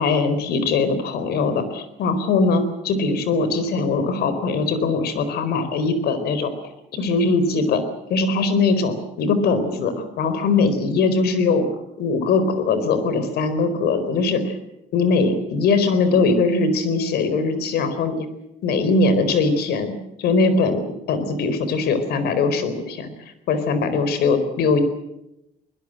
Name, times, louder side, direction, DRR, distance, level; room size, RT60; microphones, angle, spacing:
voice 1, 0.0-6.5 6.9-7.8 8.1-11.7 12.0-14.5 14.9-18.3 18.6-19.9 20.2-23.1 23.5-24.8, left 4 dB, 70° left, 11 dB, 4.3 m, -21 dB
22.5 x 20.5 x 7.8 m, 0.89 s
cardioid pair, 110°, 17 cm